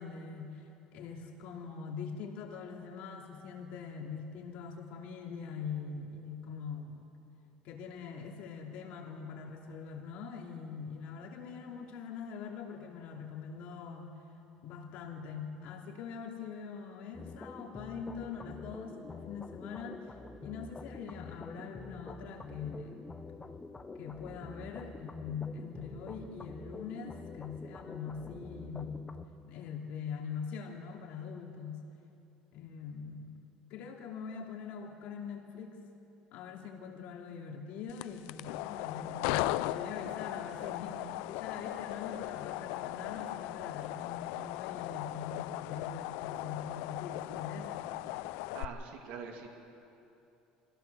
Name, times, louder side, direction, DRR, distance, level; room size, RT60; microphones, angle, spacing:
voice 1, 0.0-7.0 7.6-14.1 14.6-20.1 20.4-23.0 23.9-29.1 29.4-31.8 32.5-33.4 33.7-35.8 36.3-47.9, left 6 dB, 65° left, 1 dB, 2.7 m, -43 dB
sound 1, 17.1-29.3, left 3 dB, 15° left, 0.8 m, -47 dB
sound 2, 37.9-48.6, left 17 dB, 80° left, 0.4 m, -37 dB
voice 2, 48.5-49.5, right 6 dB, 65° right, 2 dB, 2.3 m, -43 dB
25.0 x 16.0 x 6.9 m, 2.9 s
cardioid pair, 145°, 3 cm